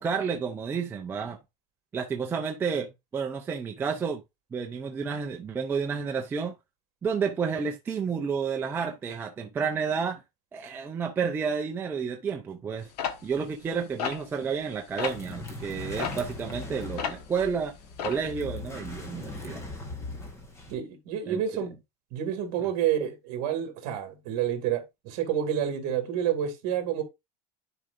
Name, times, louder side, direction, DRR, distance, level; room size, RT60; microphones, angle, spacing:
voice 1, 0.0-1.4 1.9-4.2 4.5-6.6 7.0-10.2 10.5-12.9 13.2-17.7 18.0-19.7 21.3-21.4, right 6 dB, 10° right, 0.4 m, -30 dB
sound 1, 13.0-14.7 15.0-15.3 16.0-17.4 17.7-18.3, left 8 dB, 80° left, 1.3 m, -33 dB
sound 2, 15.1-20.7, left 3 dB, 15° left, 1.1 m, -40 dB
voice 2, 20.7-21.7 22.1-27.0, right 9 dB, 45° right, 2.2 m, -29 dB
11.0 x 4.8 x 2.5 m
supercardioid pair, 170°, 20 cm